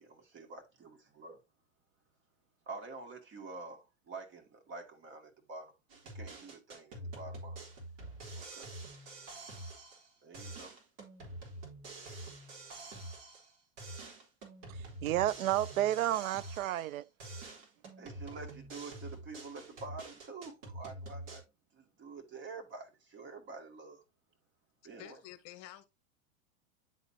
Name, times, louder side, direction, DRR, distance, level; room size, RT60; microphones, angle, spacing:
voice 1, 0.0-1.4 2.7-5.7 6.1-7.6 8.3-8.7 10.2-10.7 18.0-21.4 21.7-24.0 24.8-25.2, right 3 dB, 30° right, 2.4 m, -47 dB
sound 1, 5.9-10.1 10.3-13.5 13.8-16.9 17.2-21.4, right 2 dB, 50° right, 3.6 m, -46 dB
voice 2, 15.0-17.0, right 13 dB, 85° right, 0.6 m, -31 dB
voice 3, 25.0-25.9, left 15 dB, 40° left, 1.3 m, -49 dB
10.5 x 4.1 x 2.8 m
hypercardioid pair, 130°, 40 cm